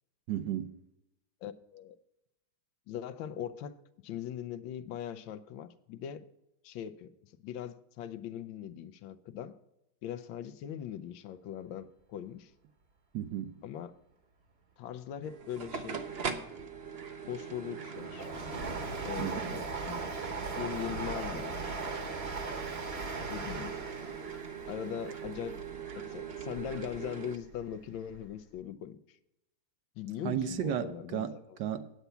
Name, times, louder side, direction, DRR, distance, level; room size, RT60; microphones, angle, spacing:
voice 1, 0.3-0.7 13.1-13.5 19.2-19.6 30.2-31.9, right 10 dB, 70° right, 1.3 m, -34 dB
voice 2, 1.4-2.0 2.9-6.2 6.6-9.6 10.0-12.5 13.6-13.9 14.8-16.0 17.3-18.3 19.0-20.0 20.6-21.8 23.3-23.7 24.7-25.6 26.1-29.2 30.0-31.4, left 10 dB, 85° left, 1.4 m, -40 dB
sound 1, 15.2-27.4, right 6 dB, 55° right, 0.6 m, -42 dB
Train, 16.8-27.0 27.4-28.3 28.6-28.7, right 3 dB, 40° right, 1.1 m, -40 dB
9.2 x 8.1 x 5.6 m
omnidirectional pair, 2.1 m